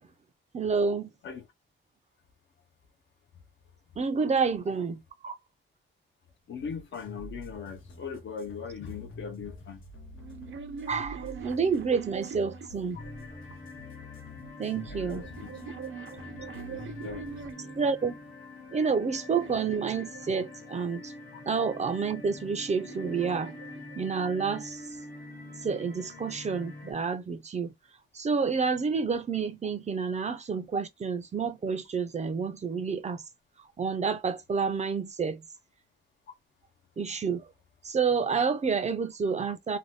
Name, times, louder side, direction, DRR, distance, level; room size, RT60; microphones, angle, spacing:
voice 1, 0.5-1.1 4.0-5.4 10.9-13.0 14.6-15.2 17.8-18.2 18.7-21.1 21.5-23.6 23.9-24.8 25.6-27.7 28.1-33.2 33.8-35.4 37.0-37.5 37.8-39.8, right 5 dB, 35° right, 0.4 m, -29 dB
voice 2, 6.5-9.8 14.9-15.5 16.6-16.7 17.0-17.7, left 6 dB, 70° left, 0.6 m, -40 dB
sound 1, 6.6-17.5, left 1 dB, 85° left, 1.1 m, -47 dB
sound 2, 10.1-13.5 14.5-17.9 18.5-20.9 22.0-24.4, right 6 dB, 80° right, 0.6 m, -44 dB
sound 3, 13.0-26.9, left 2 dB, 45° left, 0.9 m, -45 dB
2.6 x 2.2 x 3.2 m
wide cardioid pair, 170°, 20 cm